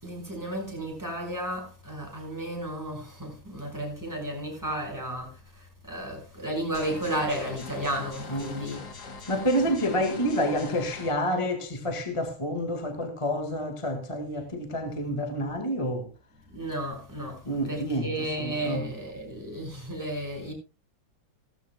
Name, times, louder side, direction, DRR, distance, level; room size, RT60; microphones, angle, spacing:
voice 1, 0.0-8.8 16.5-20.5, right 1 dB, 10° right, 5.8 m, -33 dB
sound 1, 6.7-11.1, left 4 dB, 55° left, 2.1 m, -42 dB
voice 2, 9.3-16.1 17.5-18.9, equal, 15° left, 1.8 m, -28 dB
18.0 x 14.0 x 2.2 m
omnidirectional pair, 2.2 m